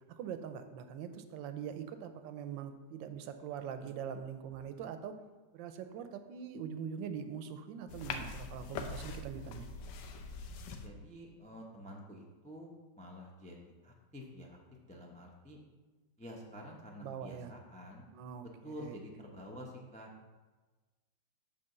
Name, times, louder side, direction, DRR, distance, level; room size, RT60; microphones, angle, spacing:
voice 1, 0.2-5.1 5.5-9.7 17.0-17.5 18.1-18.5 18.8-19.0, right 7 dB, 85° right, 9 dB, 1.3 m, -43 dB
sound 1, 7.9-10.9, left 4 dB, 75° left, 1.3 m, -43 dB
voice 2, 10.8-14.6 14.8-15.6 16.2-18.1 18.4-20.1, equal, 10° left, -1 dB, 0.3 m, -49 dB
8.1 x 3.6 x 6.6 m, 1.3 s
omnidirectional pair, 2.0 m